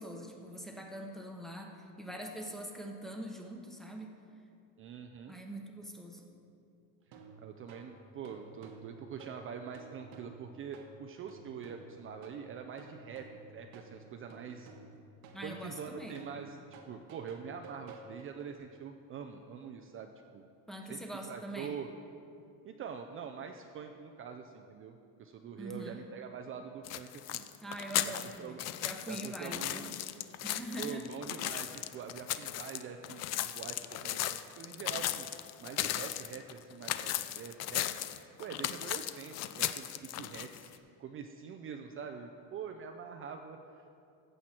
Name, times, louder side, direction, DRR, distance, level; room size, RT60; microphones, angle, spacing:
voice 1, 0.0-4.1 5.3-6.3 15.3-16.2 20.7-21.7 25.6-26.0 27.6-29.9 30.4-31.1, right 1 dB, ahead, 1 dB, 1.0 m, -43 dB
voice 2, 4.8-5.3 7.1-14.7 15.4-20.5 20.9-21.0 21.3-21.9 22.6-27.5 28.0-28.7 29.1-30.0 30.8-35.3 35.6-37.9 38.4-40.7 41.0-43.9, right 7 dB, 35° right, 4 dB, 0.5 m, -45 dB
sound 1, 7.1-18.6, right 4 dB, 75° right, 1.4 m, -53 dB
sound 2, 26.8-40.8, left 13 dB, 50° left, 0.5 m, -36 dB
15.0 x 7.7 x 4.4 m, 2.6 s
cardioid pair, 150°, 35 cm